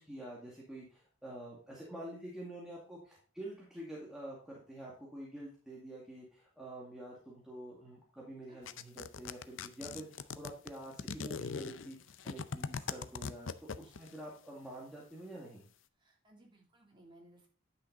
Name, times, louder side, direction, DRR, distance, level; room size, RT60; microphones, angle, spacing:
voice 1, 0.0-13.5 13.8-15.6, right 1 dB, 5° right, -5 dB, 2.1 m, -47 dB
sound 1, 8.7-14.1, left 5 dB, 70° left, 0.6 m, -40 dB
voice 2, 16.0-17.5, right 1 dB, 25° right, -1 dB, 2.9 m, -61 dB
10.0 x 6.0 x 3.9 m, 0.43 s
head